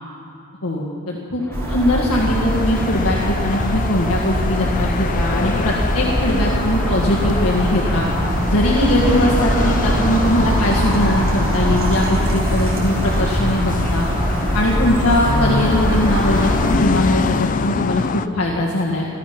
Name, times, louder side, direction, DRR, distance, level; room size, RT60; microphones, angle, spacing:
voice 1, 0.6-1.4 1.7-8.1 8.5-14.1 14.5-19.1, left 1 dB, 85° left, -4 dB, 1.7 m, -20 dB
Crowd, 1.4-17.6, left 1 dB, 10° left, 0.8 m, -34 dB
sound 1, 1.5-16.8, equal, 65° right, 3.1 m, -21 dB
sound 2, 2.1-18.3, left 4 dB, 35° left, 0.4 m, -26 dB
18.0 x 13.5 x 5.9 m, 2.7 s
head